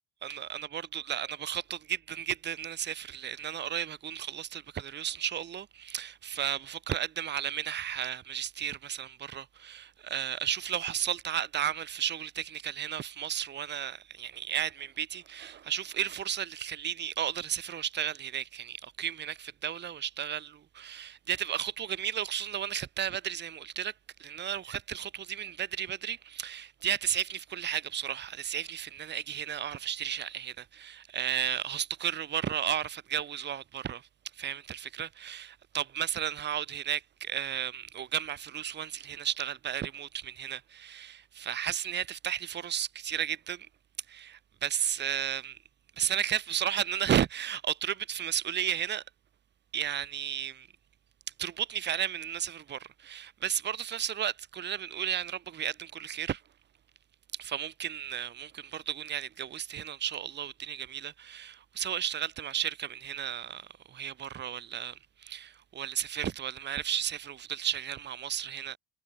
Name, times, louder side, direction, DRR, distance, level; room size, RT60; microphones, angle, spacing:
voice 1, 0.2-23.9 24.2-34.1 34.3-43.7 44.1-45.6 46.0-49.0 49.7-50.7 51.4-56.4 57.4-68.8, right 10 dB, 25° right, 1.1 m, -34 dB
cardioid pair, 175°, 44 cm